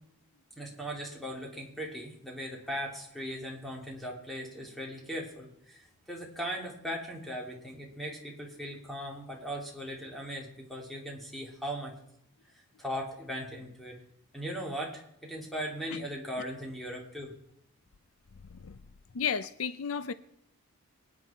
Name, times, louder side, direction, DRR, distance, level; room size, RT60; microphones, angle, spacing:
voice 1, 0.6-11.9 12.8-14.0 14.3-17.4, equal, ahead, 3.0 m, -38 dB
voice 2, 19.1-20.1, left 7 dB, 70° left, 0.6 m, -32 dB
24.0 x 9.6 x 4.4 m
head